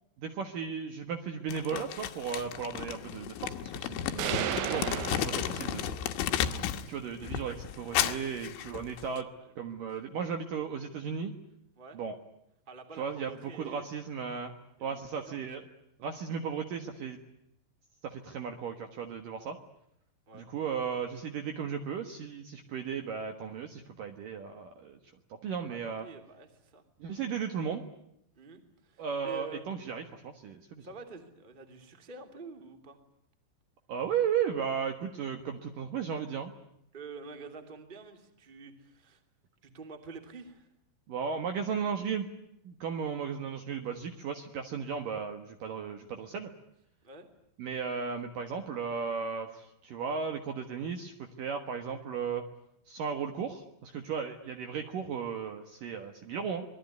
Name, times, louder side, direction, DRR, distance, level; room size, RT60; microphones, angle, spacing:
voice 1, 0.2-6.0 6.9-9.3 9.6-11.3 11.9-12.1 13.0-13.3 13.6-14.5 14.8-15.6 16.0-17.2 18.0-19.6 20.3-25.0 25.3-26.1 27.0-27.9 29.0-30.9 33.9-36.5 41.1-42.3 42.6-46.5 47.6-52.4 52.9-56.7, right 6 dB, 60° right, 6 dB, 2.6 m, -35 dB
Crumpling crinkling, 1.5-6.9 7.2-9.2, left 10 dB, 85° left, 3.7 m, -33 dB
sound 1, 4.2-6.2, right 11 dB, 85° right, 3.6 m, -34 dB
voice 2, 9.2-9.8 11.8-12.0 12.7-13.8 14.8-15.4 20.3-20.5 25.7-26.8 28.3-29.7 30.8-33.0 36.9-39.2 39.6-40.7 47.0-47.3, right 4 dB, 15° right, 6 dB, 2.1 m, -48 dB
26.0 x 20.5 x 9.7 m, 0.78 s
omnidirectional pair, 5.3 m